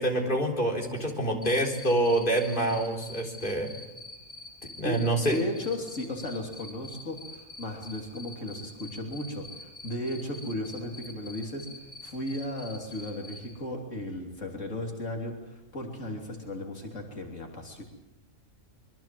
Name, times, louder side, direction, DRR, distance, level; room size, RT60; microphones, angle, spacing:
voice 1, 0.0-3.7 4.6-5.4, right 1 dB, 40° left, 0 dB, 4.0 m, -26 dB
Cricket, 1.4-13.4, left 2 dB, 25° left, 5.5 m, -44 dB
voice 2, 5.3-11.7 12.0-17.8, left 1 dB, 75° left, 1 dB, 3.6 m, -35 dB
26.0 x 23.0 x 7.6 m, 1.0 s
omnidirectional pair, 1.3 m